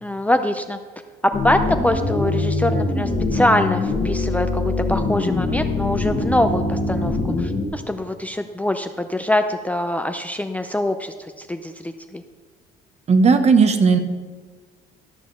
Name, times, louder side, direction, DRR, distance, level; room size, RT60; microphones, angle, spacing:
voice 1, 0.0-0.8 1.3-12.2, left 1 dB, 10° left, 7 dB, 0.4 m, -23 dB
sound 1, 1.3-7.7, left 2 dB, 40° left, 1.5 m, -23 dB
voice 2, 13.1-14.0, right 5 dB, 40° right, 9 dB, 1.0 m, -15 dB
12.5 x 5.0 x 6.4 m, 1.5 s
cardioid pair, 110°, 17 cm